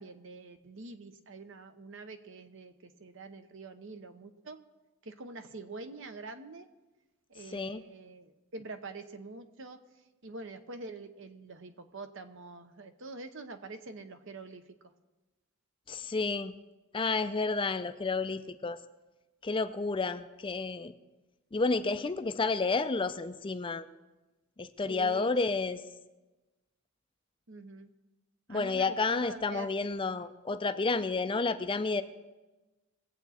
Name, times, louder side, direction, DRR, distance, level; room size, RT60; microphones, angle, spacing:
voice 1, 0.0-4.6 5.0-6.7 7.3-9.8 10.2-14.6 24.9-25.3 27.5-27.9 28.5-29.7, right 3 dB, 60° right, 9 dB, 0.9 m, -45 dB
voice 2, 15.9-16.5 16.9-18.8 19.4-20.9 21.5-23.9 24.6-25.8 28.5-32.0, left 3 dB, 25° left, 11 dB, 0.4 m, -30 dB
21.0 x 8.2 x 4.2 m, 1.1 s
head